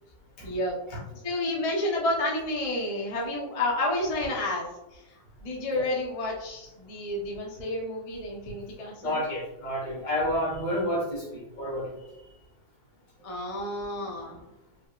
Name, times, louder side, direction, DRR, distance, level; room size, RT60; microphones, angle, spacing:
voice 1, 0.4-0.8 1.1-4.7 4.9-5.0 5.4-9.2 13.2-14.5, left 1 dB, 40° left, -2 dB, 0.5 m, -30 dB
voice 2, 9.0-12.0, left 1 dB, 70° left, -3 dB, 2.2 m, -30 dB
5.2 x 3.7 x 2.4 m, 0.93 s
omnidirectional pair, 2.0 m